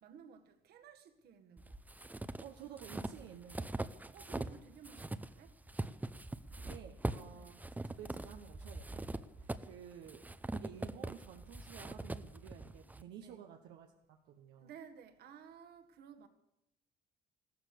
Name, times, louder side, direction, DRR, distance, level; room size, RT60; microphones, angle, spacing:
voice 1, 0.0-1.8 4.1-5.5 7.3-7.6 13.2-13.4 14.6-16.3, right 7 dB, 70° right, 1.8 m, -55 dB
sound 1, 1.6-4.6 4.8-13.0, right 2 dB, 10° right, 0.7 m, -42 dB
voice 2, 2.4-3.7 6.6-7.6 7.8-10.2 10.5-14.7, right 9 dB, 85° right, 1.3 m, -53 dB
15.0 x 13.5 x 6.7 m
cardioid pair, 110°, 17 cm